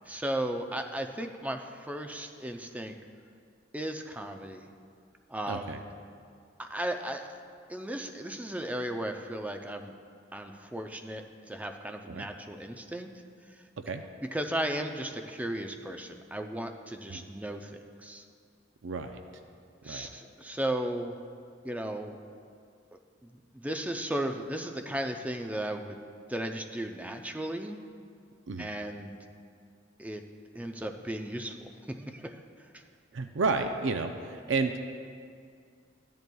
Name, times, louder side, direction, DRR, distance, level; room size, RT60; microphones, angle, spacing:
voice 1, 0.1-3.0 3.7-4.7 5.3-5.8 6.6-7.4 7.7-9.9 10.3-13.1 14.3-17.7 18.0-18.2 19.8-21.2 21.6-22.2 23.2-26.0 26.3-27.8 28.6-29.2 30.0-30.2 30.5-32.4 32.7-32.8, right 1 dB, 10° right, 5 dB, 0.4 m, -35 dB
voice 2, 5.5-5.8 12.1-12.3 13.8-14.0 17.1-17.2 18.8-19.2 19.8-20.1 28.5-28.7 33.1-34.8, right 4 dB, 75° right, 6 dB, 0.5 m, -31 dB
14.0 x 10.5 x 2.3 m, 2.2 s
head